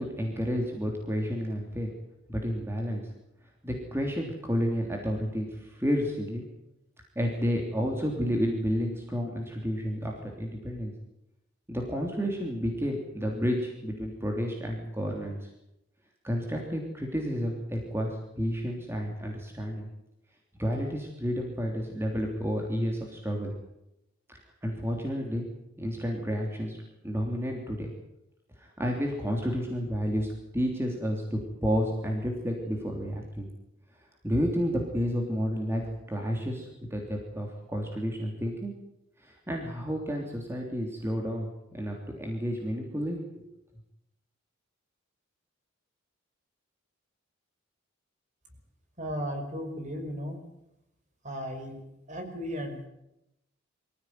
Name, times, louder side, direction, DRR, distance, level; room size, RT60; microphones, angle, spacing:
voice 1, 0.0-1.9 2.3-3.0 3.6-6.4 7.1-10.9 11.7-15.5 16.2-19.8 20.6-23.5 24.3-25.5 25.8-26.8 27.0-27.9 28.6-33.5 34.2-35.8 36.1-38.7 39.2-43.5, equal, 10° right, 1 dB, 3.2 m, -31 dB
voice 2, 49.0-50.4 51.2-51.8 52.1-52.9, equal, 35° right, 5 dB, 5.3 m, -35 dB
24.0 x 15.5 x 9.5 m, 0.87 s
head